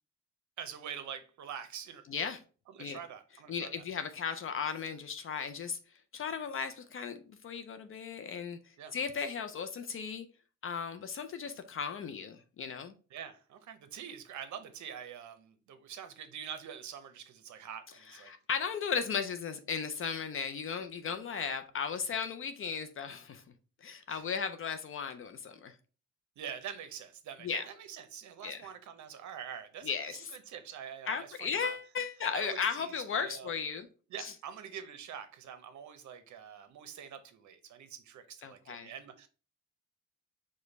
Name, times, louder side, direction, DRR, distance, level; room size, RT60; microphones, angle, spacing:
voice 1, 0.6-2.0 2.7-3.8 8.8-9.0 13.1-18.3 24.1-24.2 26.4-31.8 32.3-33.5 34.1-39.3, right 8 dB, 70° right, 0.7 m, -45 dB
voice 2, 2.1-2.4 2.8-3.0 3.5-5.8 6.1-8.6 8.9-10.3 10.6-12.9 18.1-23.4 23.8-25.7 27.4-27.6 28.4-28.6 29.8-30.3 31.1-33.9 34.2-34.3 38.4-38.9, left 6 dB, 45° left, 0.4 m, -36 dB
4.9 x 2.2 x 4.0 m
cardioid pair, 130°, 30 cm